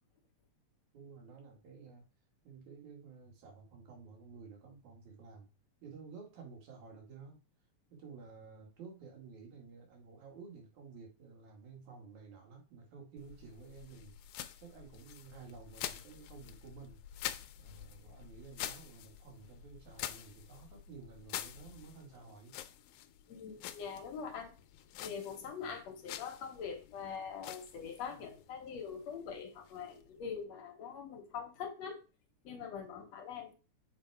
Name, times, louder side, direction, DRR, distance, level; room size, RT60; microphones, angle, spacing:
voice 1, 0.9-2.1 2.4-5.5 5.8-7.4 7.9-17.0 17.6-22.5 28.1-28.3, right 5 dB, 75° right, 1 dB, 3.2 m, -53 dB
sound 1, 13.2-30.4, left 12 dB, 90° left, 2.1 m, -48 dB
voice 2, 23.3-24.5 25.0-32.0 32.4-33.5, left 6 dB, 65° left, 4 dB, 2.2 m, -43 dB
7.7 x 4.0 x 4.7 m, 0.32 s
omnidirectional pair, 3.4 m